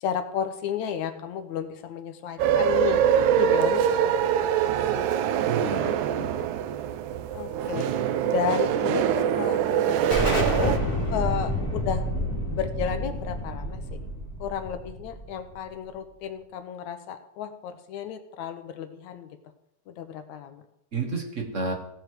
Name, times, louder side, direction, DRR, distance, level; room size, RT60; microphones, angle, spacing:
voice 1, 0.0-3.0 3.3-5.1 5.8-6.0 7.3-10.8 11.1-12.2 12.5-14.0 14.4-19.4 19.9-20.6, left 8 dB, 80° left, 8 dB, 2.2 m, -33 dB
sound 1, 2.4-10.8, right 9 dB, 80° right, 2.0 m, -24 dB
voice 2, 5.5-6.6 20.9-21.7, right 4 dB, 40° right, 2 dB, 1.1 m, -31 dB
Explosion, 10.1-15.5, left 1 dB, 30° left, 3.7 m, -29 dB
17.0 x 6.9 x 4.7 m, 0.79 s
omnidirectional pair, 3.3 m